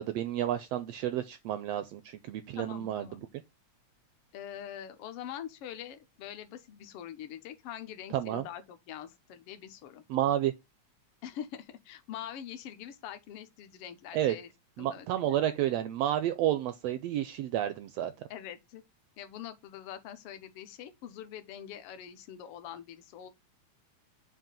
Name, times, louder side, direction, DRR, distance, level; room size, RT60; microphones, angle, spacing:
voice 1, 0.0-3.2 8.1-8.5 10.1-10.5 14.1-14.3 14.8-18.1, right 12 dB, 80° right, 1.4 m, -30 dB
voice 2, 2.5-3.2 4.3-10.0 11.2-14.5 14.8-15.4 18.3-18.8 19.2-23.3, left 10 dB, 70° left, 1.5 m, -44 dB
7.4 x 2.8 x 5.2 m
omnidirectional pair, 3.3 m